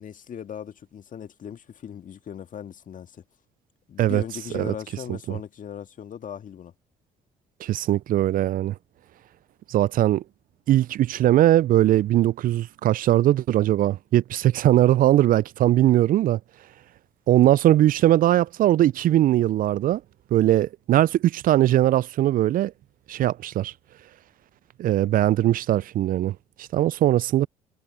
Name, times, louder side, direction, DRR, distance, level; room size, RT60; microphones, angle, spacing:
voice 1, 0.0-3.2 3.9-6.7, left 8 dB, 50° left, 2.0 m, -38 dB
voice 2, 7.6-8.7 9.7-10.2 10.7-16.4 17.3-20.0 20.3-22.7 23.1-23.7 24.8-26.3 26.7-27.5, right 13 dB, 55° right, 0.5 m, -20 dB
hypercardioid pair, 50°, 18 cm